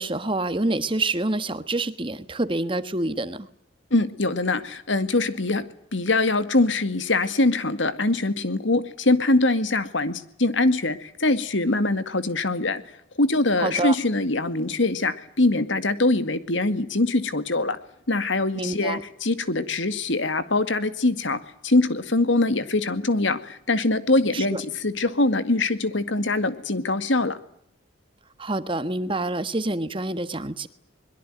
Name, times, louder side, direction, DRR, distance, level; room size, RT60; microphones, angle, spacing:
voice 1, 0.0-3.5 13.6-13.9 18.5-19.0 24.3-24.6 28.4-30.7, right 2 dB, 25° right, 12 dB, 1.4 m, -27 dB
voice 2, 3.9-12.8 13.2-17.8 18.1-27.4, left 2 dB, 75° left, 12 dB, 2.2 m, -23 dB
23.0 x 22.0 x 9.3 m, 0.70 s
head